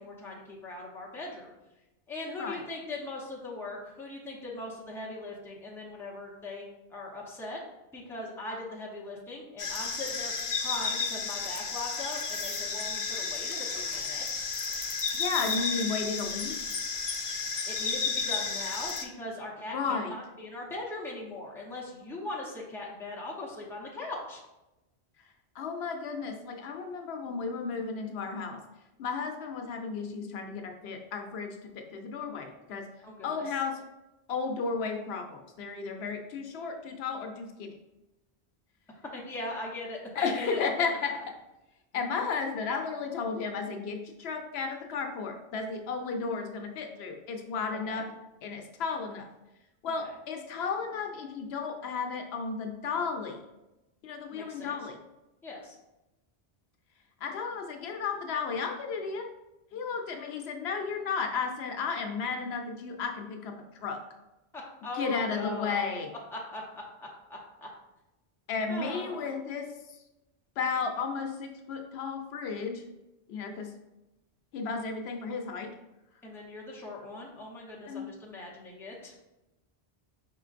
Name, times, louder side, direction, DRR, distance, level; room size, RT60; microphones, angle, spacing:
voice 1, 0.0-1.5 2.1-6.6 6.9-7.6 7.9-10.3 10.6-14.5 17.7-24.4 33.0-33.3 39.1-40.6 47.7-48.0 50.0-50.1 54.3-54.8 55.4-55.7 64.5-66.0 66.3-67.7 68.7-69.3 76.2-79.1, left 2 dB, 5° left, -3 dB, 0.6 m, -40 dB
sound 1, 9.6-19.0, left 5 dB, 55° left, 0.3 m, -32 dB
voice 2, 15.1-16.6 19.7-20.1 25.6-28.6 29.0-32.9 33.2-33.8 34.3-37.7 40.2-41.2 41.9-48.1 48.4-49.3 49.8-53.4 54.0-55.0 57.2-59.3 59.7-64.0 65.0-66.1 68.5-70.0 70.6-72.8 73.3-73.7 74.5-75.7 77.9-78.0, left 5 dB, 80° left, 4 dB, 0.8 m, -33 dB
4.9 x 3.7 x 2.5 m, 0.99 s
omnidirectional pair, 1.1 m